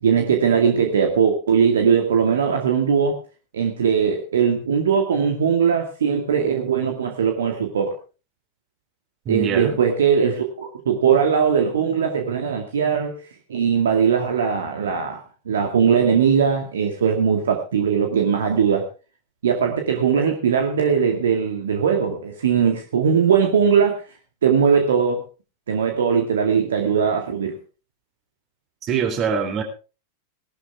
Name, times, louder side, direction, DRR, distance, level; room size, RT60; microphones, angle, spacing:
voice 1, 0.0-3.2 3.5-8.0 9.3-13.1 13.5-18.9 19.4-24.0 24.4-25.2 25.7-27.5, right 7 dB, 65° right, 3 dB, 2.1 m, -20 dB
voice 2, 9.2-9.8 28.8-29.6, right 6 dB, 30° right, 7 dB, 3.5 m, -23 dB
18.0 x 12.5 x 3.5 m, 0.34 s
figure-of-eight pair, 90°, 0 cm